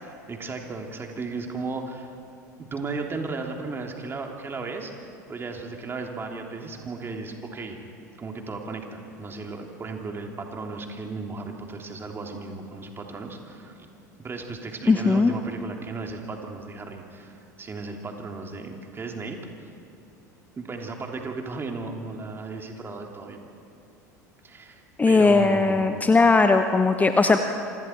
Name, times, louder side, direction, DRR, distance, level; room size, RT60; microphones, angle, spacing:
voice 1, 0.1-2.1 2.6-7.8 8.2-13.8 14.2-19.7 20.6-23.4 24.4-26.0, right 3 dB, 25° right, 2 dB, 3.3 m, -35 dB
voice 2, 14.9-15.3 25.0-27.4, left 3 dB, 15° left, 7 dB, 1.0 m, -18 dB
27.5 x 26.0 x 4.7 m, 2.6 s
figure-of-eight pair, 75°, 10 cm